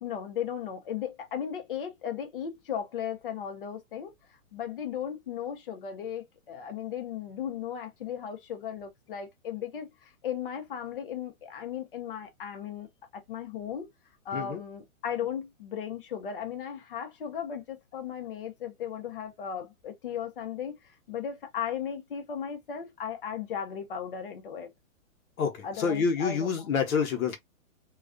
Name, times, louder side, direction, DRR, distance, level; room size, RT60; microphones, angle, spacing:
voice 1, 0.0-12.9 13.1-13.9 14.2-24.7 25.6-26.7, left 8 dB, 40° left, 0.6 m, -36 dB
voice 2, 25.4-27.4, left 6 dB, 75° left, 0.8 m, -28 dB
2.3 x 2.1 x 2.4 m
hypercardioid pair, 160°, 42 cm